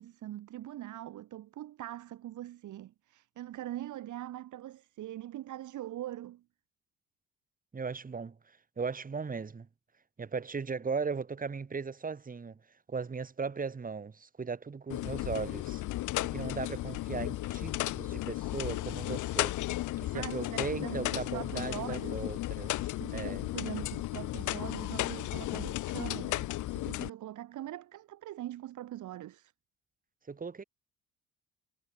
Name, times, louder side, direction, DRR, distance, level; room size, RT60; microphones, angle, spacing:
voice 1, 0.0-6.4 20.0-22.3 23.0-29.5, right 13 dB, 75° right, 2.1 m, -42 dB
voice 2, 7.7-8.4 8.8-9.7 10.2-12.6 12.9-15.8 16.2-19.6 20.0-23.4 30.3-30.6, right 5 dB, 30° right, 1.6 m, -37 dB
sound 1, 14.9-27.1, left 16 dB, 75° left, 0.7 m, -34 dB
cardioid pair, 90°, 30 cm